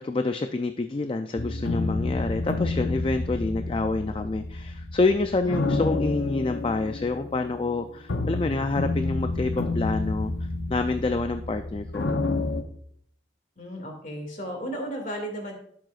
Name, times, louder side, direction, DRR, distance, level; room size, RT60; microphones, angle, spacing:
voice 1, 0.0-10.3 10.7-12.1, left 3 dB, 30° left, 7 dB, 0.3 m, -27 dB
sound 1, 1.4-12.6, left 2 dB, 75° left, 0.8 m, -29 dB
voice 2, 5.4-5.8 13.6-15.5, right 1 dB, 45° left, 3 dB, 2.2 m, -35 dB
11.5 x 7.7 x 2.4 m, 0.65 s
head